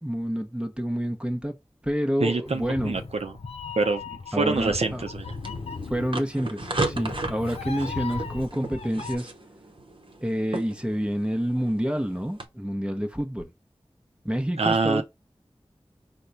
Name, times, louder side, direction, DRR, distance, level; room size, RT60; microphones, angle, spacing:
voice 1, 0.0-1.6 1.8-3.0 4.3-5.0 5.9-9.3 10.2-13.5 14.2-15.0, equal, 10° right, 0.8 m, -28 dB
voice 2, 2.2-3.3 3.8-5.4 14.6-15.0, right 4 dB, 90° right, 0.6 m, -26 dB
Meow, 2.5-9.2, left 4 dB, 80° left, 0.6 m, -37 dB
sound 1, 4.6-12.5, right 2 dB, 55° right, 0.8 m, -36 dB
4.5 x 2.2 x 3.9 m
wide cardioid pair, 50°, 10 cm